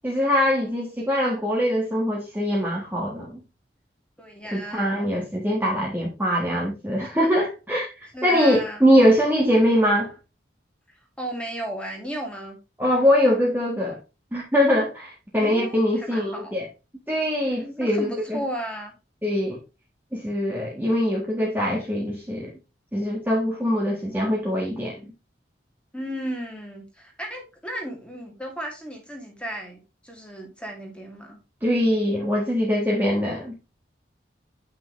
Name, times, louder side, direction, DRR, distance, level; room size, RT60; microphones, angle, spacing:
voice 1, 0.0-3.3 4.5-7.9 8.2-10.1 12.8-14.0 14.3-16.7 17.1-18.4 19.2-19.6 20.1-22.5 22.9-25.0 31.6-33.6, equal, 10° right, 1.4 m, -22 dB
voice 2, 4.2-5.1 8.1-8.8 11.2-12.6 15.4-16.6 17.8-18.9 25.9-31.4, right 1 dB, 5° left, 2.2 m, -34 dB
8.9 x 5.8 x 3.0 m
head